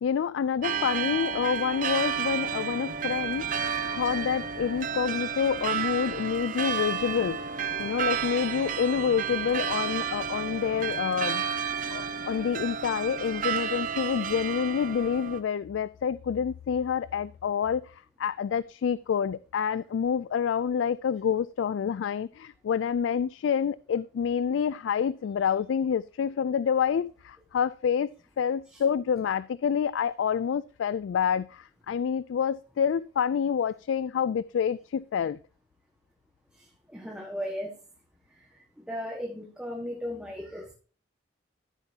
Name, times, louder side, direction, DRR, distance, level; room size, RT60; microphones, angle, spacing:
voice 1, 0.0-3.5 3.9-7.4 7.8-11.4 11.9-17.9 18.2-28.1 28.4-35.4, left 7 dB, 90° left, 0.3 m, -28 dB
sound 1, 0.6-15.4, right 7 dB, 45° right, 0.8 m, -31 dB
voice 2, 36.9-37.7 38.8-40.7, equal, 5° right, 1.5 m, -36 dB
13.5 x 8.0 x 2.8 m
head